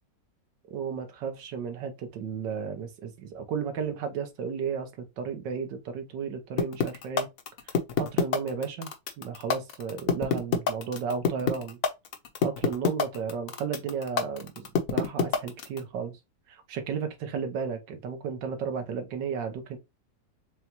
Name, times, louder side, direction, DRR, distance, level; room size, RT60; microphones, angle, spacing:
voice 1, 0.7-4.9 5.2-7.3 8.0-8.9 9.2-11.8 12.4-16.1 16.5-19.8, right 6 dB, 80° right, 1.6 m, -33 dB
sound 1, 6.6-15.8, left 6 dB, 60° left, 1.0 m, -25 dB
6.7 x 2.3 x 2.9 m
omnidirectional pair, 1.9 m